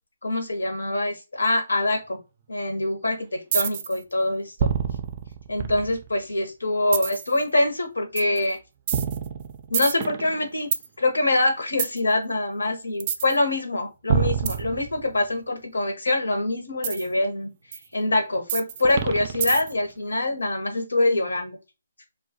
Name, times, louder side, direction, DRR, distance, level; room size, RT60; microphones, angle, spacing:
voice 1, 0.2-2.2 2.5-4.7 5.5-8.6 9.7-10.7 11.0-17.5 17.9-21.6, left 2 dB, 85° left, 5 dB, 0.8 m, -24 dB
sound 1, 3.5-4.0 4.6-6.2 6.9-7.3 8.2-8.4 8.9-10.9 11.8-12.0 13.0-13.4 14.1-15.3 16.8-17.0 17.7-17.8 18.5-19.9, right 7 dB, 35° right, 0.3 m, -26 dB
2.2 x 2.1 x 2.7 m, 0.27 s
figure-of-eight pair, 145°, 0 cm